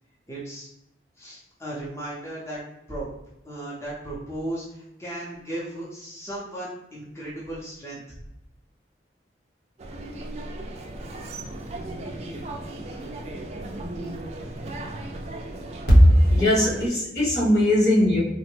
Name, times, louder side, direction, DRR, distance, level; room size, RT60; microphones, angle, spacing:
voice 1, 0.3-0.7 1.2-2.6 2.9-3.1 3.4-8.0, right 1 dB, 15° left, -7 dB, 0.6 m, -35 dB
sound 1, 9.8-16.9, right 2 dB, 35° right, 0.3 m, -36 dB
voice 2, 15.9-18.2, equal, 65° left, -6 dB, 1.3 m, -18 dB
3.4 x 2.0 x 3.2 m, 0.84 s
head